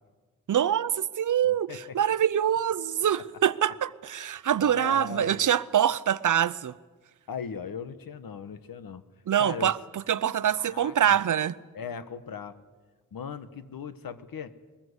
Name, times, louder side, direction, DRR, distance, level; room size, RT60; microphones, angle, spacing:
voice 1, 0.5-6.7 9.3-11.6, right 9 dB, 60° right, 0.7 m, -25 dB
voice 2, 4.6-5.5 7.3-9.0 9.4-9.8 10.4-11.2 11.7-12.6 13.1-14.5, left 6 dB, 80° left, 1.3 m, -38 dB
21.5 x 20.0 x 8.1 m
wide cardioid pair, 165°, 34 cm